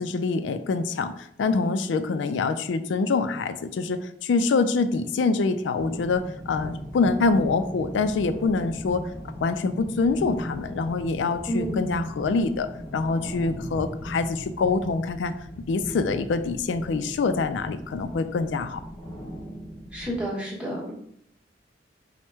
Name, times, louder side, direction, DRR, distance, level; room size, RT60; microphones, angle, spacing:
voice 1, 0.0-9.1 9.4-15.3 15.7-18.8, left 4 dB, 90° left, 10 dB, 0.3 m, -25 dB
sound 1, 5.8-20.2, equal, 20° left, 0.8 m, -38 dB
voice 2, 11.5-11.9 19.9-20.9, right 1 dB, 5° right, -5 dB, 1.1 m, -30 dB
4.4 x 2.1 x 4.6 m, 0.70 s
head